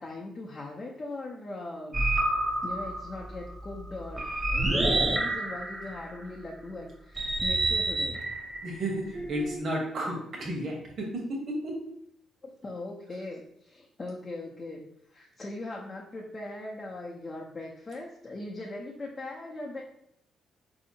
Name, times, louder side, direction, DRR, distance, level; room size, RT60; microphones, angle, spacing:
voice 1, 0.0-2.1 2.6-8.3 12.4-14.8 15.1-19.8, left 2 dB, 30° left, -3 dB, 0.6 m, -40 dB
sound 1, 1.9-6.3 7.2-9.6, right 2 dB, 25° right, 0.6 m, -29 dB
voice 2, 8.6-11.9, right 1 dB, 50° right, -1 dB, 1.1 m, -33 dB
4.0 x 2.8 x 2.7 m, 0.73 s
cardioid pair, 90°, 0 cm